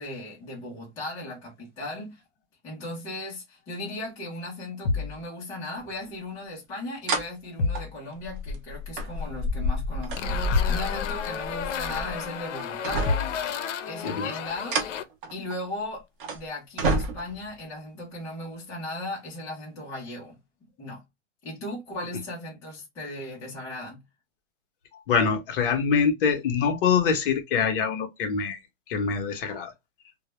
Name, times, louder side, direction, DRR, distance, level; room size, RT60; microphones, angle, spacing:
voice 1, 0.0-2.2 2.6-13.1 13.8-14.8 15.3-16.0 16.3-20.4 20.8-21.0 21.4-24.0, left 1 dB, 10° left, 0.4 m, -37 dB
sound 1, 4.8-5.2 7.6-8.0 10.5-10.9 13.1-13.4, left 3 dB, 65° left, 1.0 m, -27 dB
sound 2, 6.1-6.2 7.1-7.3 7.7-12.2 12.6-13.4 14.4-15.7 16.2-16.4 16.8-17.5 18.5-18.6, equal, 45° right, 0.7 m, -29 dB
sound 3, 10.2-15.0, left 8 dB, 90° left, 0.5 m, -33 dB
voice 2, 14.0-14.4 25.1-28.6 28.9-29.7, left 6 dB, 50° left, 0.7 m, -24 dB
2.2 x 2.0 x 2.8 m
hypercardioid pair, 150°, 36 cm